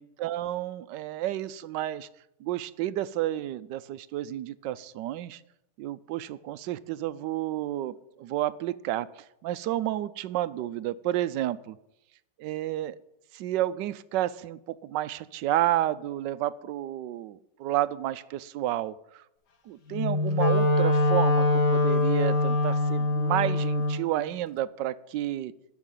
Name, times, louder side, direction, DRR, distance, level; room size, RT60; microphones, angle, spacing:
voice 1, 0.0-2.1 2.4-5.4 5.8-9.1 9.4-11.8 12.4-13.0 13.3-19.2 19.7-25.5, right 13 dB, 80° right, 16 dB, 1.2 m, -31 dB
Wind instrument woodwind instrument, 19.9-24.0, left 2 dB, 65° left, 1.9 m, -23 dB
13.5 x 5.8 x 9.1 m, 0.86 s
omnidirectional pair, 1.9 m